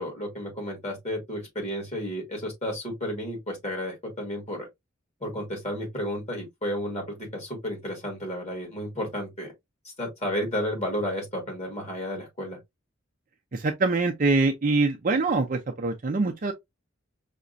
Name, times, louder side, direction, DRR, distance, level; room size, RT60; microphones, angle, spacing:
voice 1, 0.0-4.7 5.2-9.5 9.8-12.6, equal, 35° left, 1.4 m, -32 dB
voice 2, 13.5-16.5, right 3 dB, 45° right, 0.5 m, -24 dB
5.7 x 2.1 x 2.5 m
head